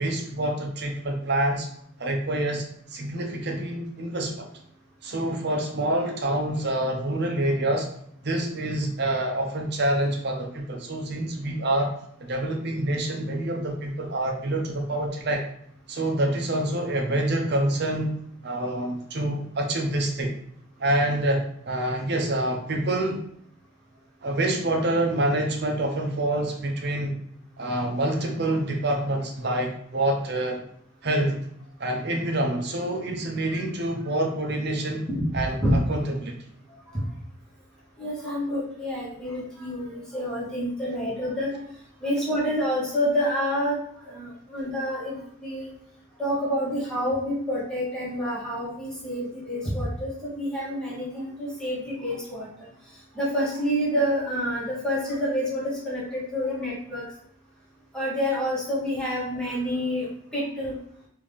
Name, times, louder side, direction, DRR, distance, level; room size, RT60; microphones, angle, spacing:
voice 1, 0.0-1.7 2.0-4.5 5.0-7.9 8.2-11.9 12.2-15.4 15.9-18.2 18.4-20.3 20.8-23.2 24.2-27.2 27.6-30.6 31.0-31.4 31.8-35.1 35.3-36.3, right 1 dB, 55° right, 1 dB, 0.7 m, -26 dB
voice 2, 35.3-35.8 36.9-37.0 38.0-41.6 42.0-43.8 44.0-45.7 46.2-52.5 53.1-57.0 57.9-60.7, equal, 5° left, -8 dB, 1.3 m, -28 dB
3.3 x 2.7 x 3.4 m, 0.69 s
head